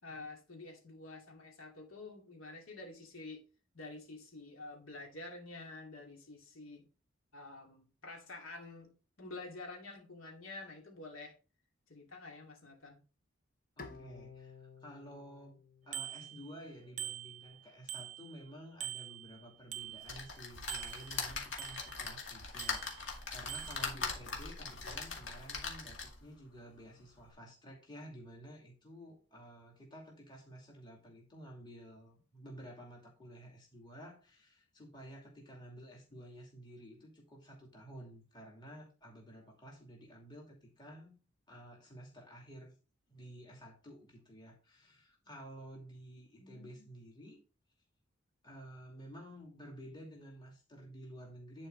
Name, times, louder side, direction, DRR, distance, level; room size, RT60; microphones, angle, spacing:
voice 1, 0.0-3.4 3.7-6.8 7.3-8.9 9.2-11.4 11.9-13.0 46.4-46.9, left 2 dB, 90° left, 2.6 m, -49 dB
Bowed string instrument, 13.8-17.0, left 4 dB, 40° left, 0.9 m, -54 dB
voice 2, 13.8-15.6 15.9-41.2 41.5-42.7 43.1-47.4 48.4-51.7, equal, 20° left, 2.5 m, -52 dB
Bicycle bell, 15.9-16.7 17.0-18.5 18.8-20.4 20.7-22.1 22.6-23.2 23.5-23.9, right 11 dB, 35° right, 0.4 m, -45 dB
sound 1, 20.1-26.3 26.8-26.9 27.2-27.3, left 4 dB, 65° left, 2.2 m, -41 dB
10.5 x 4.5 x 3.9 m
head